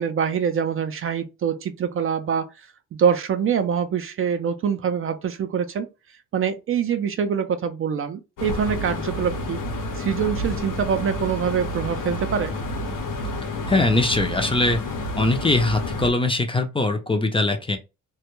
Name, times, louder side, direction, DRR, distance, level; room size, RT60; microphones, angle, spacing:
voice 1, 0.0-2.7 3.0-5.9 6.3-9.6 10.0-12.6, right 7 dB, 45° right, 0.4 m, -24 dB
sound 1, 8.4-16.1, left 1 dB, 75° left, 0.9 m, -30 dB
voice 2, 13.7-14.8 15.2-17.8, left 2 dB, 15° left, 0.4 m, -21 dB
2.2 x 2.1 x 3.0 m
cardioid pair, 100°, 32 cm